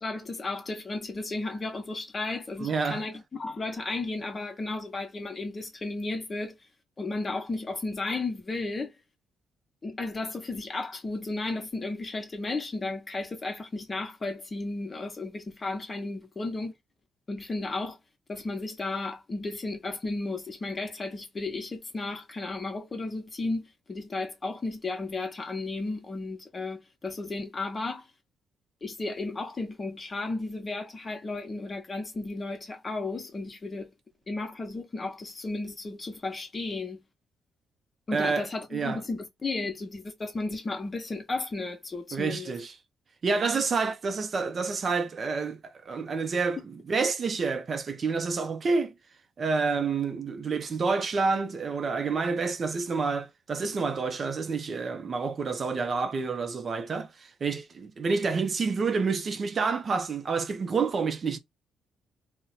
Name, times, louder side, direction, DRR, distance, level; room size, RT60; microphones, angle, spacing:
voice 1, 0.0-6.6 7.0-8.9 9.8-16.7 17.3-18.0 18.3-28.1 28.8-33.9 34.3-37.0 38.1-42.5 46.6-46.7, left 3 dB, 30° left, 1.0 m, -34 dB
voice 2, 2.6-3.0 38.1-38.5 38.7-39.0 42.1-42.7 43.2-48.9 49.4-61.4, right 4 dB, 45° right, 0.6 m, -28 dB
2.7 x 2.1 x 4.0 m
cardioid pair, 90°, 0 cm